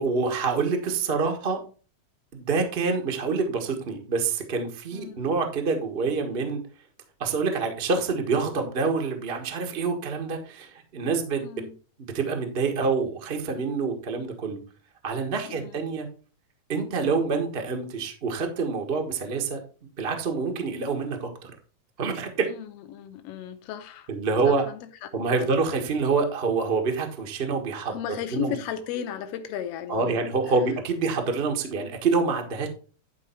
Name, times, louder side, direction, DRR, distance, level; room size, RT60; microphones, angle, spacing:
voice 1, 0.0-1.6 2.3-6.6 7.2-11.4 12.1-14.6 15.0-16.1 16.7-19.6 20.0-21.5 22.0-22.5 24.1-24.6 25.1-27.9 28.3-28.5 29.9-32.7, right 4 dB, 40° right, 0.8 m, -26 dB
voice 2, 4.9-5.2 11.4-11.7 15.5-15.8 22.5-24.1 24.5-25.5 27.9-30.3, left 9 dB, 65° left, 1.8 m, -35 dB
11.0 x 4.6 x 4.5 m
omnidirectional pair, 3.5 m